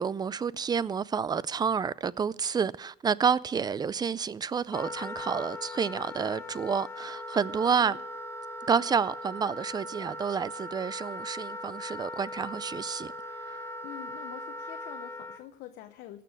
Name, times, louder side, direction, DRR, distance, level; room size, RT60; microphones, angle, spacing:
voice 1, 0.0-8.0 8.7-13.1 13.5-13.6, right 6 dB, 25° right, 0.4 m, -29 dB
Wind instrument woodwind instrument, 4.7-15.4, left 1 dB, 15° left, 0.8 m, -39 dB
voice 2, 7.6-8.0 13.8-16.2, left 13 dB, 85° left, 0.8 m, -46 dB
17.0 x 6.8 x 6.4 m
cardioid pair, 110°, 17 cm